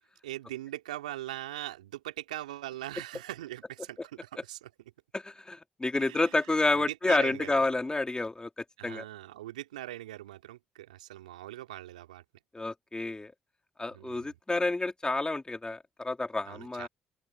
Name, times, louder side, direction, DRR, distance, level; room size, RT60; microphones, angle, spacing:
voice 1, 0.2-4.7 6.0-6.3 6.7-7.7 8.8-12.2 13.9-14.4 16.4-16.9, right 14 dB, 85° right, 3.4 m, -41 dB
voice 2, 5.1-9.0 12.5-13.3 13.8-16.9, left 2 dB, 20° left, 3.6 m, -29 dB
open air
hypercardioid pair, 45°, 4 cm